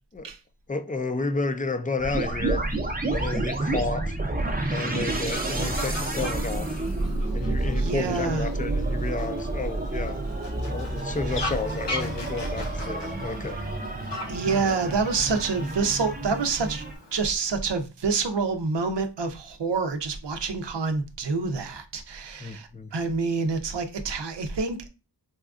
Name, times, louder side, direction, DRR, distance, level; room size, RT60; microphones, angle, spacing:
voice 1, 0.7-2.7 3.1-4.2 4.7-6.8 7.3-10.2 10.6-13.6 14.5-14.8 22.4-22.9, left 3 dB, 20° left, 0.4 m, -31 dB
sound 1, 2.0-16.9, right 2 dB, 20° right, 0.7 m, -29 dB
Fowl, 4.7-17.3, left 2 dB, 75° left, 0.9 m, -40 dB
voice 2, 7.8-8.5 14.3-16.8 17.1-24.9, right 4 dB, 80° right, 0.6 m, -27 dB
4.2 x 2.3 x 2.4 m
wide cardioid pair, 55°, 42 cm